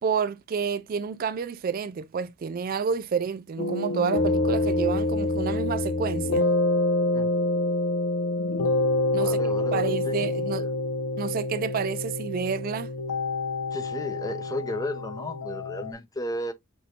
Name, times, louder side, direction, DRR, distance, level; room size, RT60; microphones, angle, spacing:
voice 1, 0.0-6.5 9.1-9.4 9.7-10.7 11.2-12.9, right 6 dB, 40° right, 0.3 m, -29 dB
sound 1, 3.6-15.9, left 2 dB, 85° left, 0.6 m, -27 dB
voice 2, 9.1-10.7 13.7-16.5, left 1 dB, 15° left, 0.5 m, -34 dB
5.9 x 2.6 x 2.7 m
head